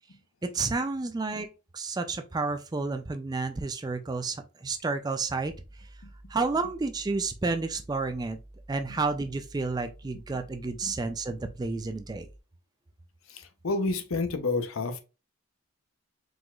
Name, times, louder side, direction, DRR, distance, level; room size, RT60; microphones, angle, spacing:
voice 1, 0.4-1.5 1.7-5.5 6.3-8.4 8.7-12.3, right 3 dB, 20° right, 0.3 m, -30 dB
sound 1, 5.4-12.4, right 1 dB, 75° right, 1.1 m, -51 dB
voice 2, 13.3-15.0, left 3 dB, 75° left, 0.7 m, -30 dB
4.8 x 3.8 x 2.3 m
head